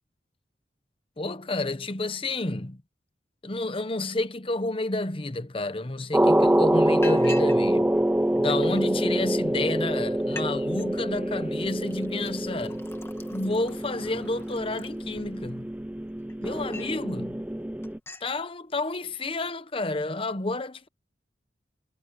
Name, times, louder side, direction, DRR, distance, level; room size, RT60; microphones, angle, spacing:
voice 1, 1.2-2.8 3.4-8.0 8.3-12.8 13.3-15.7 16.4-17.4 18.2-20.9, left 2 dB, 30° left, 1.0 m, -30 dB
Liquid, 5.9-6.0 6.3-6.5 7.0-7.6 7.9-8.8 9.5-9.6 9.9-10.0 10.2-10.5 10.8-11.2 11.7-15.5 16.0-17.0 17.4-17.6 17.8-18.3, left 2 dB, 15° left, 1.7 m, -44 dB
sound 1, 6.1-18.0, right 1 dB, 10° right, 0.5 m, -26 dB
head